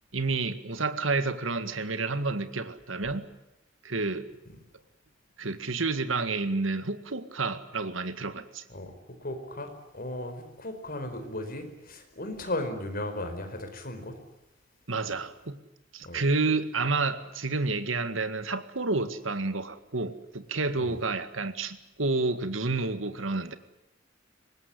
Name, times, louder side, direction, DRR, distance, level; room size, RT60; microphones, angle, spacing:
voice 1, 0.1-3.2 3.8-4.3 5.4-8.6 14.9-15.6 15.9-23.6, right 3 dB, 85° right, 11 dB, 1.9 m, -30 dB
voice 2, 9.2-14.1 16.0-16.2 20.8-21.0, left 1 dB, 50° left, 7 dB, 4.7 m, -36 dB
24.5 x 20.0 x 9.8 m, 0.91 s
head